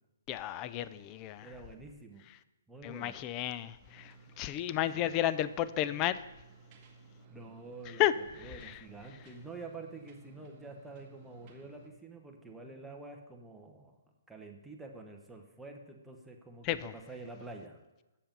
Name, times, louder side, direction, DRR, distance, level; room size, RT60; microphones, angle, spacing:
voice 1, 0.3-1.5 2.8-4.1 4.4-6.2 8.0-8.1 16.6-16.9, left 13 dB, 25° left, 0.3 m, -32 dB
voice 2, 1.4-2.2 2.7-3.2 4.9-5.3 7.3-14.0 14.3-17.8, right 3 dB, 5° right, 0.9 m, -48 dB
sound 1, 3.8-11.9, right 4 dB, 30° right, 1.3 m, -57 dB
7.4 x 6.9 x 5.3 m
hypercardioid pair, 150°, 0 cm